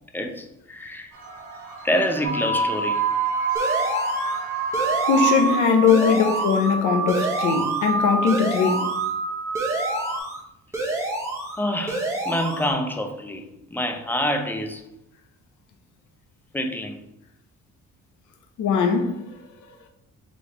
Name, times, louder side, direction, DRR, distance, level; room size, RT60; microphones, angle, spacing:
voice 1, 0.1-1.1 1.8-3.0 11.6-13.4 13.7-14.8 16.5-17.0, equal, 5° left, 0.5 m, -26 dB
sound 1, 1.1-6.2, right 3 dB, 80° right, 1.3 m, -40 dB
sound 2, 2.2-10.2, right 4 dB, 45° right, 1.0 m, -26 dB
sound 3, 3.6-4.4 4.7-5.6 5.9-6.7 7.1-7.9 8.3-9.1 9.6-10.4 10.7-11.6 11.9-12.7, right 2 dB, 10° right, 1.0 m, -29 dB
voice 2, 5.1-8.8 18.6-19.2, left 6 dB, 80° left, 0.7 m, -20 dB
4.2 x 3.1 x 3.0 m
cardioid pair, 90°, 30 cm